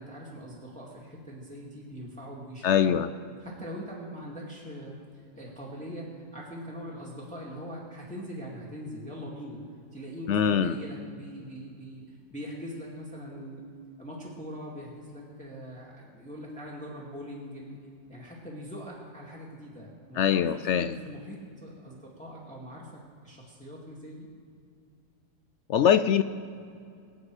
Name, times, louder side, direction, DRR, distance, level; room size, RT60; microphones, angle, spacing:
voice 1, 0.0-3.0 3.4-9.6 9.9-13.6 14.0-17.8 18.1-24.3, equal, 5° left, -5 dB, 2.2 m, -42 dB
voice 2, 2.6-3.1 10.3-10.7 20.1-20.9 25.7-26.2, left 8 dB, 70° left, 11 dB, 0.7 m, -23 dB
24.0 x 8.8 x 4.9 m, 2.4 s
omnidirectional pair, 1.7 m